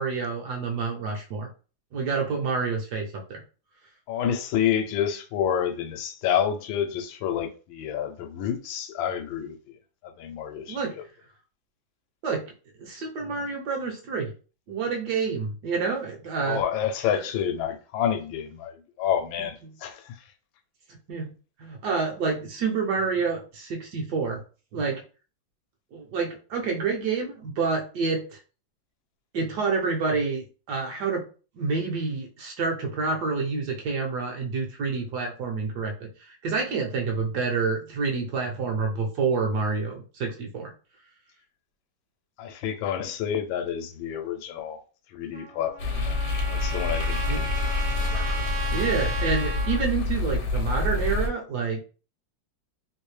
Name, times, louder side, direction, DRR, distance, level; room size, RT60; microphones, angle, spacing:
voice 1, 0.0-1.5 1.9-3.4 10.7-10.9 12.2-12.4 12.8-14.3 14.7-16.6 19.6-19.7 21.1-21.3 21.6-24.4 24.7-25.0 25.9-28.2 29.3-31.2 31.6-36.1 36.4-40.7 47.3-47.5 48.7-51.8, right 4 dB, 70° right, 1.1 m, -28 dB
voice 2, 4.1-9.6 10.0-11.0 16.4-20.2 42.4-44.8 45.1-46.2 46.5-47.6, left 9 dB, 80° left, 1.3 m, -29 dB
Trumpet, 45.3-49.9, right 4 dB, 85° right, 0.6 m, -35 dB
sound 1, 45.8-51.3, left 3 dB, 65° left, 1.0 m, -27 dB
3.2 x 2.6 x 3.1 m
omnidirectional pair, 2.1 m